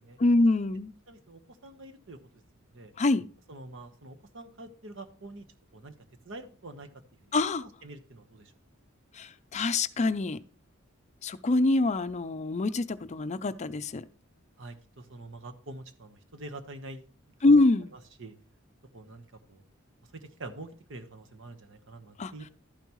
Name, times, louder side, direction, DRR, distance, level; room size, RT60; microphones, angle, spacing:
voice 1, 0.2-0.9 3.0-3.3 7.3-7.6 9.2-10.4 11.2-14.0 17.4-17.9 22.2-22.3, left 2 dB, 35° left, 12 dB, 0.4 m, -25 dB
voice 2, 1.1-2.2 2.7-2.9 3.5-5.5 5.7-5.9 6.2-6.9 7.2-7.3 7.6-8.5 14.6-17.1 17.4-17.6 17.9-18.3 18.9-19.6 20.1-22.5, right 2 dB, 65° right, 7 dB, 1.2 m, -46 dB
12.0 x 9.1 x 3.0 m, 0.38 s
head